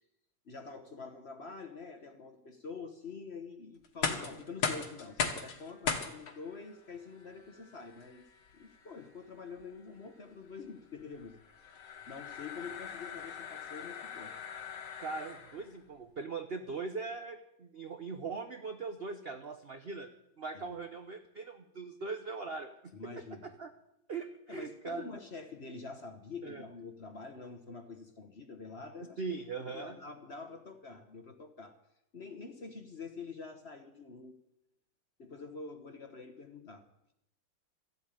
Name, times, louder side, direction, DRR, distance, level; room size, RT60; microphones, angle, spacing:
voice 1, 0.4-8.2 8.5-14.3 20.5-20.8 22.9-23.5 24.5-31.8 32.1-34.4 35.2-36.8, left 4 dB, 40° left, 6 dB, 1.1 m, -46 dB
sound 1, 3.8-15.7, left 5 dB, 60° left, 2.0 m, -40 dB
voice 2, 15.0-23.7 24.1-25.1 26.4-26.6 29.2-30.0, right 4 dB, 60° right, 6 dB, 0.6 m, -41 dB
13.5 x 8.0 x 8.9 m, 0.84 s
omnidirectional pair, 2.2 m